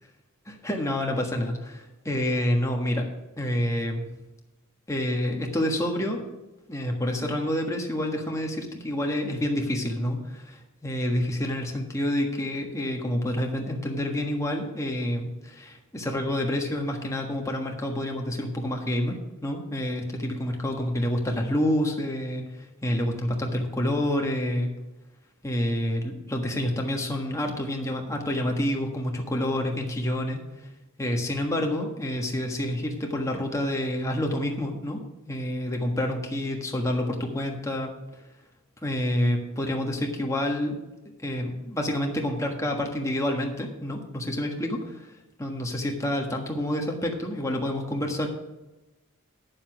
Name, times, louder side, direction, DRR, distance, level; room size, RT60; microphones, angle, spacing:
voice 1, 0.5-3.1 3.4-4.0 4.9-6.2 6.7-19.1 19.4-24.7 25.4-30.4 31.0-35.0 35.3-37.9 38.8-40.8 41.2-45.1 45.4-48.3, left 1 dB, 15° left, 1 dB, 1.4 m, -28 dB
9.9 x 7.1 x 5.8 m, 1.0 s
head